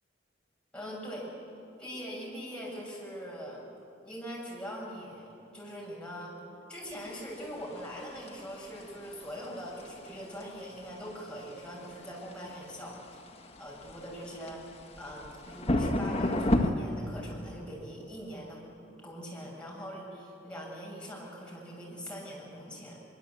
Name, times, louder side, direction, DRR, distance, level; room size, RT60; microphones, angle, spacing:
voice 1, 0.7-1.3 1.8-3.7 4.0-5.3 5.5-6.3 6.7-13.0 13.6-14.6 15.0-18.6 19.0-23.0, equal, 5° left, -5 dB, 6.7 m, -42 dB
sound 1, 6.9-16.7, left 1 dB, 35° left, 1.6 m, -33 dB
24.0 x 23.5 x 8.2 m, 2.6 s
head